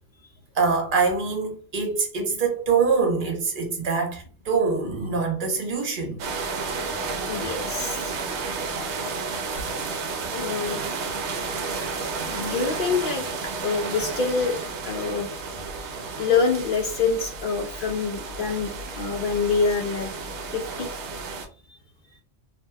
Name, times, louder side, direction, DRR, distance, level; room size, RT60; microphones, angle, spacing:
voice 1, 0.5-6.2, right 4 dB, 45° right, 0.9 m, -24 dB
sound 1, 6.2-21.5, right 4 dB, 70° right, 0.8 m, -32 dB
voice 2, 7.3-8.2 10.3-13.2 13.6-15.3 16.2-20.1 20.5-20.9 21.7-21.8, left 5 dB, 60° left, 0.5 m, -27 dB
2.8 x 2.1 x 3.3 m
omnidirectional pair, 1.3 m